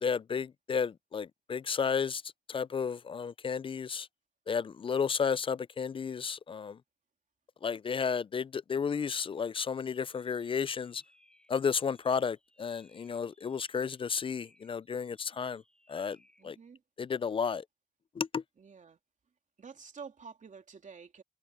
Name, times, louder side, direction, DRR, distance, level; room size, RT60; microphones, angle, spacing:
voice 1, 0.0-2.2 2.5-4.1 4.5-6.8 7.6-11.0 11.5-15.6 15.9-16.2 16.4-16.6 17.0-17.6 18.2-18.4, left 6 dB, 25° left, 0.3 m, -32 dB
sound 1, 9.6-16.6, left 1 dB, 5° left, 5.6 m, -68 dB
voice 2, 16.4-16.8 18.6-19.0 19.6-21.2, right 5 dB, 40° right, 2.9 m, -49 dB
cardioid pair, 90°, 20 cm